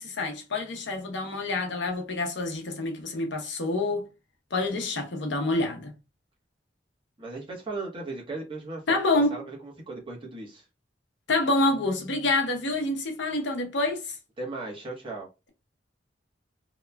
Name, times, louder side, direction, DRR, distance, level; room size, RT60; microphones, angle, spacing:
voice 1, 0.0-4.1 4.5-5.9 8.9-9.4 11.3-14.2, left 2 dB, 80° left, 0.7 m, -27 dB
voice 2, 7.2-9.0 9.3-10.6 14.4-15.3, right 2 dB, 30° right, 1.0 m, -37 dB
2.8 x 2.3 x 2.2 m
head